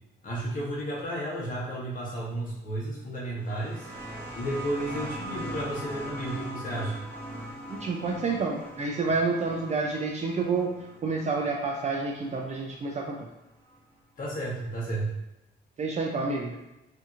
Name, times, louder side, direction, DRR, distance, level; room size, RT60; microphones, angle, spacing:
voice 1, 0.2-3.9 4.3-6.9 14.2-15.1, right 1 dB, 45° left, -4 dB, 1.0 m, -32 dB
sound 1, 3.4-12.6 13.8-13.9, right 1 dB, 10° left, 0.9 m, -40 dB
voice 2, 7.7-13.3 15.8-16.5, right 4 dB, 35° right, 0 dB, 0.4 m, -29 dB
2.7 x 2.7 x 2.4 m, 0.93 s
cardioid pair, 90°, 20 cm